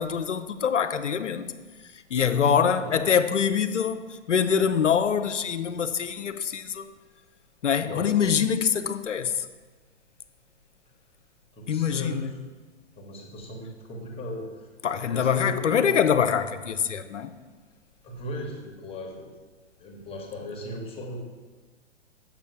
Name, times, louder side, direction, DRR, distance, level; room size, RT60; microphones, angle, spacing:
voice 1, 0.0-1.5 1.9-6.9 7.6-9.5 11.7-12.3 14.8-17.3, left 7 dB, 80° left, 0.7 m, -24 dB
voice 2, 2.2-3.0 7.8-8.2 11.5-12.4 13.0-14.7 15.1-15.9 18.0-19.3 19.8-21.2, left 1 dB, 15° left, 1.3 m, -36 dB
7.5 x 6.1 x 5.5 m
figure-of-eight pair, 120°, 36 cm